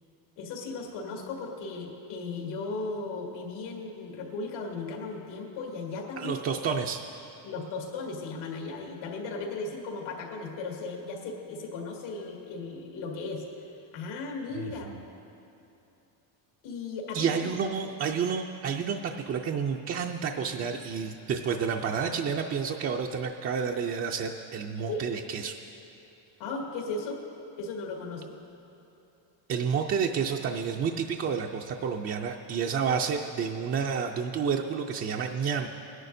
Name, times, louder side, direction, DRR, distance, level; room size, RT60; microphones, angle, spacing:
voice 1, 0.4-6.4 7.4-13.4 13.9-14.9 16.6-17.5 24.9-25.1 26.4-27.2 27.6-28.3, left 3 dB, 80° left, -1 dB, 2.1 m, -36 dB
voice 2, 6.2-7.0 14.6-15.0 17.1-25.6 29.5-35.7, right 6 dB, 30° right, 2 dB, 0.4 m, -30 dB
21.5 x 11.0 x 2.6 m, 2.9 s
cardioid pair, 140°, 49 cm